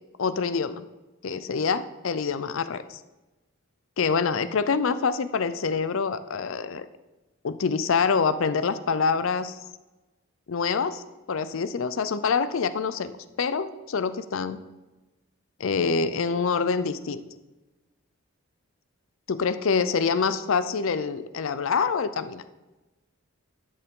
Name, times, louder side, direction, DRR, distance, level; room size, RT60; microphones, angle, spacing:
voice 1, 0.2-0.8 1.2-3.0 4.0-6.9 7.4-9.6 10.5-11.0 11.3-14.6 15.6-17.2 19.3-22.4, left 5 dB, 65° left, 13 dB, 0.5 m, -26 dB
12.0 x 6.8 x 3.7 m, 1.1 s
head